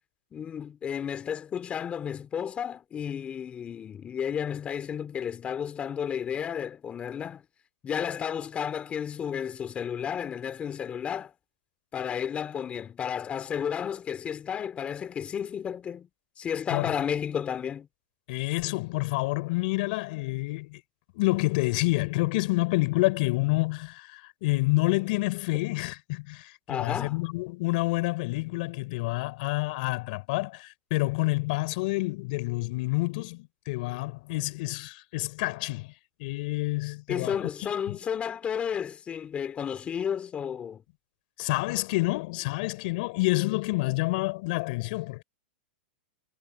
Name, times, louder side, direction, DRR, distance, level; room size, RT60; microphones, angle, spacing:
voice 1, 0.3-7.4 7.8-11.3 11.9-16.1 16.4-17.9 26.7-27.2 37.1-40.8, left 8 dB, 20° left, 2.9 m, -32 dB
voice 2, 18.3-20.8 21.1-35.9 36.2-37.5 37.9-38.0 41.4-45.2, left 23 dB, 55° left, 4.6 m, -28 dB
hypercardioid pair, 135°, 6 cm